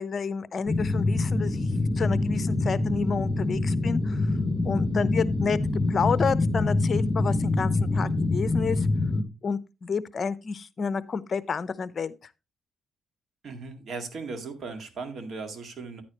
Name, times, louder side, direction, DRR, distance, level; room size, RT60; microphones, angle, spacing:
voice 1, 0.0-1.7 2.0-4.2 4.6-5.6 5.9-8.9 9.4-12.1, left 5 dB, 40° left, 0.7 m, -30 dB
sound 1, 0.7-9.2, left 2 dB, 20° left, 1.7 m, -25 dB
voice 2, 13.4-16.0, right 4 dB, 55° right, 1.9 m, -37 dB
9.9 x 9.5 x 2.9 m
cardioid pair, 90°, 0 cm